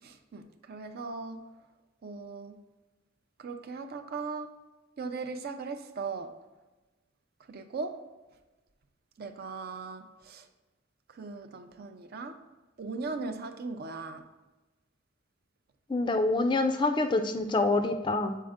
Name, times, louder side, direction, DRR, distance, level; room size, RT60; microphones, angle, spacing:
voice 1, 0.0-1.4 2.0-2.6 3.4-4.5 5.0-6.3 7.5-8.0 9.2-10.5 11.1-12.4 12.8-14.2, right 4 dB, 50° right, 8 dB, 0.4 m, -38 dB
voice 2, 15.9-18.4, left 2 dB, 25° left, 8 dB, 0.4 m, -26 dB
7.4 x 4.3 x 3.5 m, 1.1 s
head